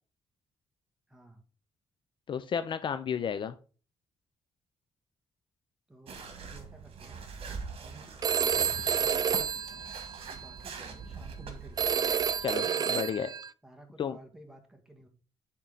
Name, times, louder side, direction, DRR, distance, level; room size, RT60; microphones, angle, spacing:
voice 1, 1.1-1.4 3.1-3.5 5.9-7.2 7.8-9.9 10.3-12.3 12.6-12.9 13.6-15.1, right 2 dB, 5° right, 3 dB, 1.8 m, -54 dB
voice 2, 2.3-3.5 12.4-13.3 14.0-14.2, left 7 dB, 50° left, 11 dB, 0.6 m, -32 dB
sound 1, 6.1-12.6, right 5 dB, 65° right, 1.7 m, -43 dB
Telephone, 8.2-10.6 11.8-13.5, right 7 dB, 40° right, 0.4 m, -29 dB
8.2 x 3.8 x 4.0 m, 0.37 s
cardioid pair, 90°, 10 cm